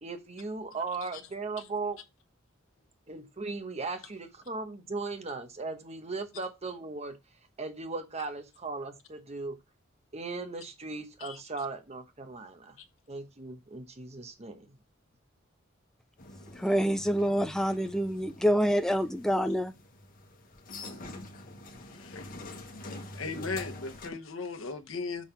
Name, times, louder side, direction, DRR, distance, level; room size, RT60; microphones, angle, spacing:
voice 1, 0.0-2.0 3.1-7.2 7.6-9.6 10.1-12.8 13.1-14.7, right 3 dB, 35° right, 1.0 m, -37 dB
sound 1, 16.2-24.1, left 2 dB, 45° left, 1.2 m, -46 dB
voice 2, 16.5-19.7, equal, 5° left, 0.4 m, -27 dB
voice 3, 21.9-22.3 23.1-25.2, left 4 dB, 85° left, 1.0 m, -37 dB
6.2 x 3.6 x 5.6 m
head